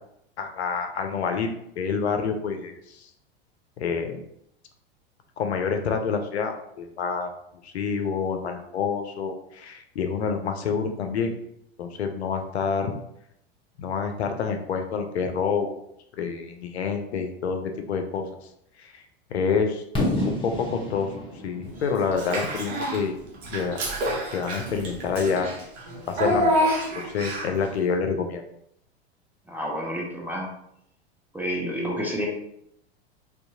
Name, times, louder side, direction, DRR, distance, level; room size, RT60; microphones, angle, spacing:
voice 1, 0.4-1.5 1.8-3.1 3.8-4.2 5.4-7.3 7.6-11.3 11.8-12.9 13.8-15.8 16.2-18.4 18.8-18.9 19.3-19.8 20.2-23.2 23.5-23.8 24.3-25.5 26.1-28.4, left 5 dB, 85° left, 6 dB, 0.5 m, -27 dB
Fireworks, 19.9-23.8, left 1 dB, 15° left, 0.8 m, -30 dB
Child speech kid speaking / Bathtub (filling or washing), 22.1-23.0 23.4-27.7, equal, 55° right, 0.9 m, -27 dB
voice 2, 29.5-30.5 31.3-32.3, equal, 5° right, -2 dB, 0.4 m, -29 dB
2.6 x 2.3 x 2.6 m, 0.74 s
hypercardioid pair, 95°, 32 cm